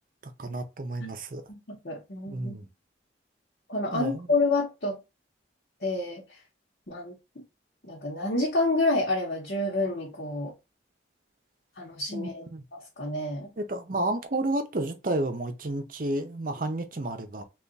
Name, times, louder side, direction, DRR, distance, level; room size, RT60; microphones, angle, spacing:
voice 1, 0.2-1.4 2.3-2.7 3.9-4.3 12.1-12.6 13.6-17.4, right 2 dB, 45° right, 0.7 m, -31 dB
voice 2, 1.5-2.6 3.7-5.0 5.8-6.2 6.9-7.1 7.8-10.5 11.8-12.4 12.7-13.5, left 2 dB, 65° left, 1.1 m, -28 dB
3.5 x 2.4 x 3.9 m
head